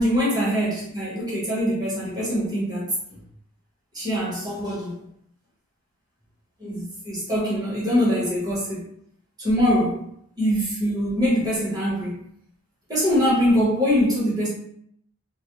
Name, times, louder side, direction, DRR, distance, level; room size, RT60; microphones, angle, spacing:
voice 1, 0.0-2.9 3.9-5.0 6.6-8.8 9.4-10.0 10.4-12.2 12.9-14.5, equal, 15° right, -8 dB, 0.8 m, -23 dB
2.2 x 2.1 x 2.9 m, 0.69 s
head